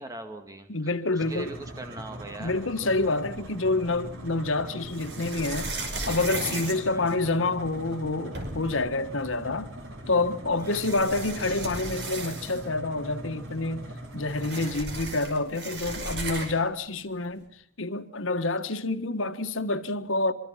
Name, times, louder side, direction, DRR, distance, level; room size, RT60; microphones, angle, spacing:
voice 1, 0.0-2.6 6.7-7.1 10.6-11.1, right 1 dB, 15° right, 2.1 m, -42 dB
voice 2, 0.7-1.5 2.4-5.7 6.1-9.7 10.1-13.8 14.1-17.5 17.8-20.3, left 2 dB, 85° left, 1.5 m, -28 dB
sound 1, 1.2-14.7, right 1 dB, 85° right, 5.0 m, -41 dB
sound 2, 3.3-4.1 4.9-7.6 8.0-8.1 8.3-8.8 9.9-10.0 10.6-12.8 13.1-13.2 13.5-16.7, right 2 dB, 55° right, 5.3 m, -36 dB
24.5 x 24.5 x 5.7 m
head